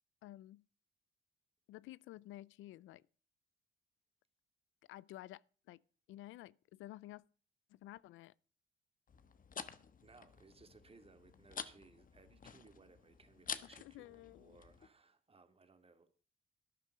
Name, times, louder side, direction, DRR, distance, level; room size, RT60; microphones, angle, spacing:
voice 1, 0.2-0.6 1.7-3.0 4.9-5.8 6.1-7.2 7.7-8.3 13.6-14.6, left 15 dB, 85° left, 0.5 m, -52 dB
sound 1, 9.1-14.9, left 6 dB, 45° left, 1.3 m, -49 dB
voice 2, 10.0-16.1, right 4 dB, 30° right, 2.3 m, -63 dB
13.0 x 10.5 x 4.9 m
cardioid pair, 90°, 20 cm